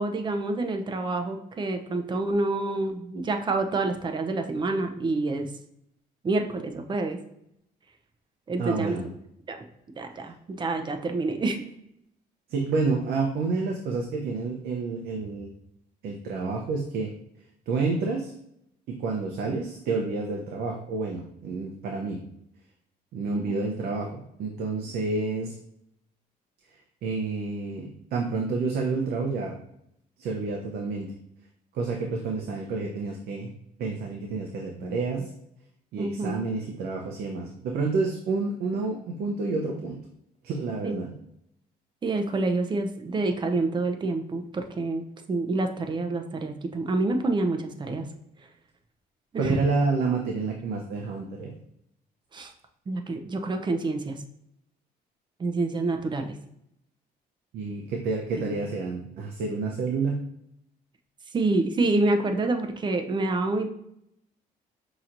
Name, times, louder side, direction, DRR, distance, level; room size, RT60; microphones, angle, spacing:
voice 1, 0.0-5.5 6.2-7.2 8.5-9.0 9.5-9.7 10.0-11.7 23.3-23.6 34.8-34.9 36.0-36.4 40.8-41.0 42.0-48.1 49.3-49.6 52.3-52.5 52.9-54.2 55.4-56.3 58.4-58.6 61.3-63.7, right 2 dB, 25° right, 5 dB, 0.6 m, -27 dB
voice 2, 8.6-9.0 12.5-15.5 16.0-17.1 17.7-18.3 18.9-22.2 23.1-25.5 27.0-29.5 30.2-31.1 31.7-33.5 33.8-35.3 35.9-40.0 40.4-41.1 49.4-51.5 57.5-60.2, right 4 dB, 65° right, 1 dB, 0.7 m, -29 dB
5.6 x 2.9 x 2.6 m, 0.76 s
cardioid pair, 110°, 17 cm